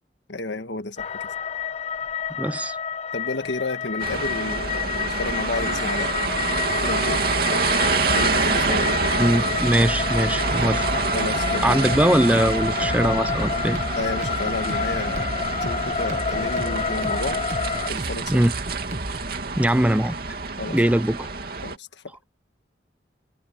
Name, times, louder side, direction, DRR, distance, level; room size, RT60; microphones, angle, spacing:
voice 1, 0.3-1.2 3.1-6.3 6.8-7.2 8.1-9.0 11.1-12.0 13.9-17.4 17.9-18.4 20.6-20.8 21.6-22.1, left 2 dB, 90° left, 1.5 m, -31 dB
sound 1, 1.0-17.9, left 6 dB, 35° left, 0.6 m, -29 dB
voice 2, 2.4-2.8 9.2-10.8 11.6-13.8 18.3-18.5 19.5-20.2 20.7-21.3, right 1 dB, 10° right, 0.5 m, -21 dB
sound 2, 4.0-21.8, right 4 dB, 60° right, 2.7 m, -27 dB
sound 3, 11.9-19.4, right 1 dB, 40° right, 1.5 m, -35 dB
head